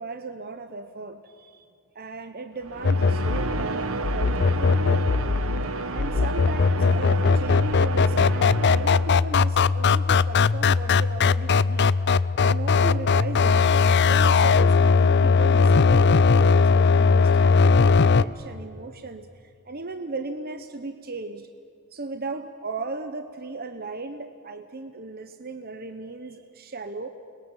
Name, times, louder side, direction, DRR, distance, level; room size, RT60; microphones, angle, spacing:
voice 1, 0.0-1.7 1.9-5.4 5.9-11.9 12.4-13.7 14.1-21.5 21.9-27.1, right 3 dB, 45° right, 8 dB, 1.1 m, -37 dB
sound 1, 2.6-9.5, right 3 dB, 75° right, 1.1 m, -31 dB
sound 2, 2.8-18.2, left 4 dB, 55° left, 0.5 m, -19 dB
30.0 x 21.5 x 7.3 m, 2.4 s
head